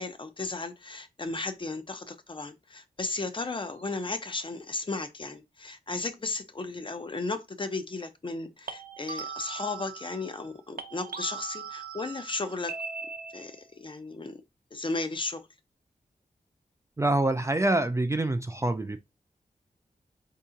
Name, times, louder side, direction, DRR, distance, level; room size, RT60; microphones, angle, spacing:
voice 1, 0.0-12.8 13.3-14.4 14.7-15.5, left 3 dB, 35° left, 0.6 m, -35 dB
sound 1, 3.7-4.0 8.7-10.5 10.8-13.7, right 5 dB, 75° right, 0.7 m, -40 dB
voice 2, 17.0-19.0, right 2 dB, 20° right, 0.4 m, -26 dB
4.6 x 2.8 x 3.7 m
wide cardioid pair, 125°, 15 cm